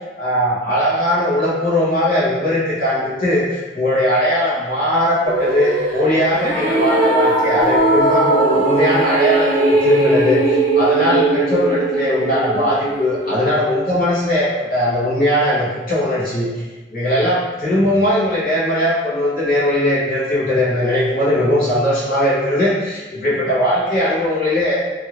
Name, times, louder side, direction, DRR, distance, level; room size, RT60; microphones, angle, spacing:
voice 1, 0.2-16.5 16.9-24.8, left 1 dB, 50° left, -9 dB, 1.1 m, -19 dB
sound 1, 5.3-13.5, right 2 dB, 55° right, 0.8 m, -18 dB
2.6 x 2.5 x 3.0 m, 1.2 s
head